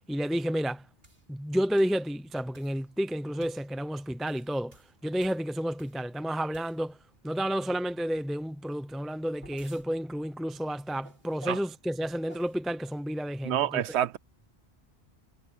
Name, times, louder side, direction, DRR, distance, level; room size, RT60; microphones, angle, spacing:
voice 1, 0.1-0.8 1.3-4.8 5.0-7.0 7.2-14.0, equal, ahead, 0.7 m, -31 dB
sound 1, 1.0-1.2 1.8-2.0 2.5-2.8 3.4-3.7 4.1-6.1 6.5-7.0 8.9-9.9 11.0-11.7 12.3-12.6, right 1 dB, 60° right, 5.0 m, -55 dB
voice 2, 13.4-14.2, right 11 dB, 85° right, 0.9 m, -27 dB
omnidirectional pair, 1.1 m